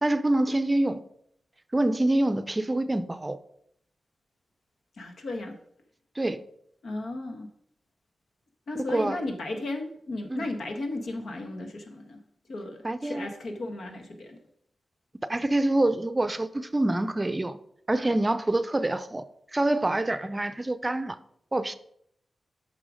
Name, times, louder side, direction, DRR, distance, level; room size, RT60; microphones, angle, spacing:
voice 1, 0.0-1.0 1.7-3.4 6.2-6.4 8.9-9.2 10.3-10.5 12.8-13.3 15.3-17.6 17.9-19.2 19.5-21.2 21.5-21.8, right 1 dB, 25° right, 0.5 m, -26 dB
voice 2, 5.0-5.6 6.8-7.5 8.7-12.2 12.5-14.4, left 2 dB, 75° left, 1.5 m, -35 dB
8.7 x 5.7 x 5.0 m
cardioid pair, 80°, 0 cm